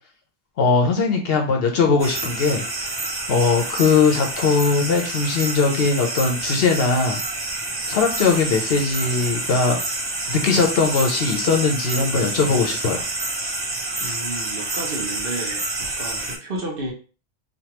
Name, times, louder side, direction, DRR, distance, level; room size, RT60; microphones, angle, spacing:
voice 1, 0.6-2.6 3.3-7.2 7.9-9.8 10.3-13.0, left 4 dB, 65° left, 0.7 m, -20 dB
sound 1, 2.0-16.4, right 2 dB, 35° right, 0.5 m, -28 dB
voice 2, 14.0-16.9, right 2 dB, 55° right, 0.9 m, -32 dB
3.2 x 2.3 x 2.8 m
omnidirectional pair, 1.2 m